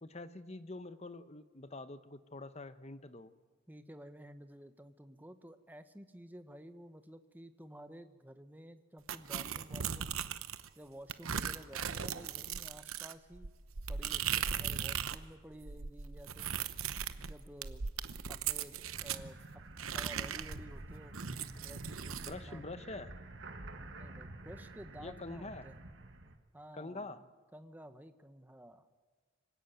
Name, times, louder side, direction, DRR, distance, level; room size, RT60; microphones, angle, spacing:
voice 1, 0.0-3.3 22.2-23.1 25.0-25.7 26.7-27.2, left 2 dB, 30° left, 12 dB, 0.9 m, -45 dB
voice 2, 3.7-10.2 10.7-13.5 13.9-16.6 17.2-17.8 18.3-19.6 19.9-21.2 21.6-22.8 24.0-25.8 26.5-28.9, right 1 dB, 10° right, 9 dB, 1.0 m, -53 dB
sound 1, 9.1-10.7 11.1-15.2 15.5-19.2 19.8-22.3, right 8 dB, 75° right, 0.9 m, -38 dB
sound 2, 18.8-26.4, right 2 dB, 55° right, 1.8 m, -49 dB
25.0 x 17.0 x 9.2 m, 1.5 s
head